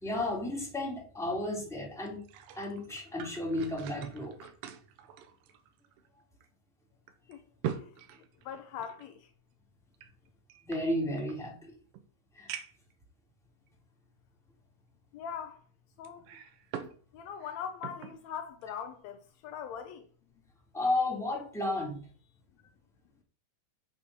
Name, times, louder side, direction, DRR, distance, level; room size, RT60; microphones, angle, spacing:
voice 1, 0.0-2.2 2.5-4.5 10.6-11.7 12.3-12.5 20.7-22.0, left 1 dB, ahead, 2.4 m, -33 dB
sound 1, 2.1-6.1 6.4-6.5 7.1-9.1 9.9-11.4 11.9-12.0 12.5-12.9 13.7-13.8 16.0-17.0 17.3-18.2 18.6-18.8, right 9 dB, 80° right, 2.6 m, -43 dB
voice 2, 7.7-9.3 15.1-15.6 16.0-16.2 17.1-20.1, left 8 dB, 80° left, 1.6 m, -41 dB
7.2 x 6.2 x 6.7 m
omnidirectional pair, 3.9 m